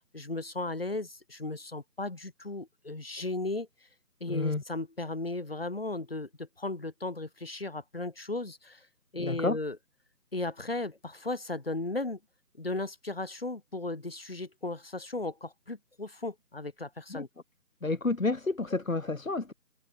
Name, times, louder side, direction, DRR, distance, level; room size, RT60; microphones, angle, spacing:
voice 1, 0.1-3.7 4.2-8.8 9.1-9.8 10.3-12.2 12.6-17.3, left 2 dB, 35° left, 2.7 m, -36 dB
voice 2, 4.3-4.6 9.2-9.6 17.1-17.3 17.8-19.5, left 3 dB, 55° left, 2.1 m, -30 dB
figure-of-eight pair, 175°, 48 cm